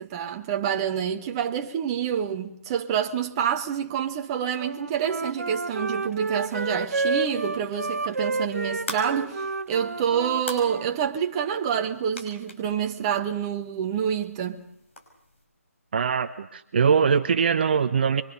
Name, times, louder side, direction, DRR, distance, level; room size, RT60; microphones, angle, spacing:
voice 1, 0.0-14.6, right 8 dB, 20° right, 1.4 m, -27 dB
Wind instrument woodwind instrument, 4.6-11.0, right 3 dB, 70° right, 1.3 m, -30 dB
sound 1, 6.3-15.5, left 1 dB, 55° left, 5.7 m, -45 dB
voice 2, 15.9-18.2, right 6 dB, 40° right, 1.0 m, -22 dB
25.5 x 24.0 x 6.8 m
figure-of-eight pair, 155°, 8 cm